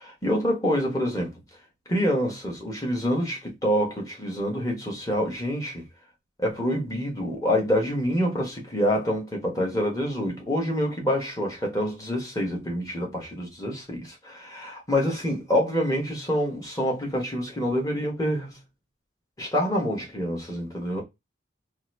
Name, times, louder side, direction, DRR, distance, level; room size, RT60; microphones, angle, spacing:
voice 1, 0.2-1.3 1.9-5.8 6.4-18.6 19.4-21.0, equal, 20° left, 1.1 m, -26 dB
2.9 x 2.5 x 3.1 m
head